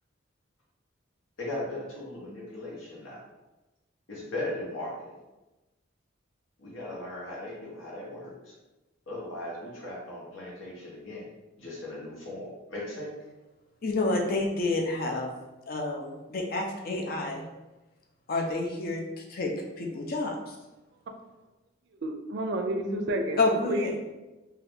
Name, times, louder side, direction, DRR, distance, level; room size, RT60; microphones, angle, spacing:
voice 1, 1.4-3.2 4.1-5.2 6.6-8.5 9.1-11.3 11.6-13.1, left 1 dB, 85° left, -4 dB, 0.9 m, -38 dB
voice 2, 13.8-15.3 15.7-17.4 18.3-20.6 23.4-23.9, left 2 dB, 50° left, 1 dB, 0.5 m, -29 dB
voice 3, 22.0-23.9, right 1 dB, 60° right, 4 dB, 0.4 m, -30 dB
2.7 x 2.3 x 3.4 m, 1.1 s
head